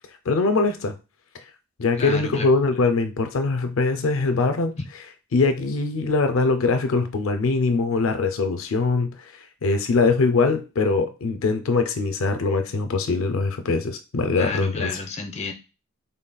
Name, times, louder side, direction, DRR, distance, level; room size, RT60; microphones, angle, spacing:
voice 1, 0.3-0.9 1.3-1.4 1.8-4.8 5.3-14.9, left 3 dB, 70° left, 8 dB, 0.5 m, -22 dB
voice 2, 2.0-2.5 4.8-4.9 14.4-15.5, left 3 dB, 30° left, 6 dB, 0.7 m, -30 dB
3.9 x 3.6 x 2.2 m, 0.29 s
head